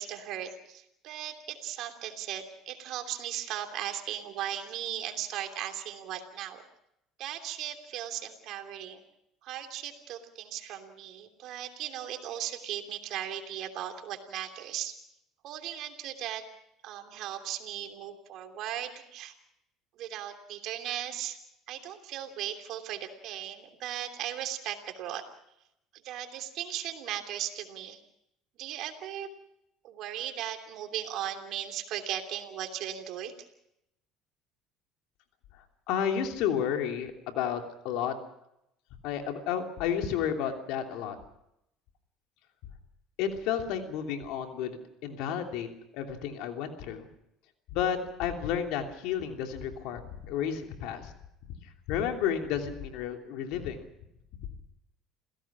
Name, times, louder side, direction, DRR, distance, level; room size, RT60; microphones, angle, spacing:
voice 1, 0.0-6.6 7.2-9.0 9.4-15.0 15.4-16.4 16.8-19.3 20.0-21.4 21.7-25.2 25.9-28.0 28.6-29.3 29.8-33.3, right 11 dB, 65° right, 6 dB, 3.0 m, -37 dB
voice 2, 35.9-38.1 39.0-41.2 43.2-45.7 45.9-47.1 47.7-51.1 51.9-53.8, left 8 dB, 75° left, 4 dB, 3.0 m, -31 dB
28.5 x 16.5 x 6.1 m, 0.80 s
supercardioid pair, 85°, 0 cm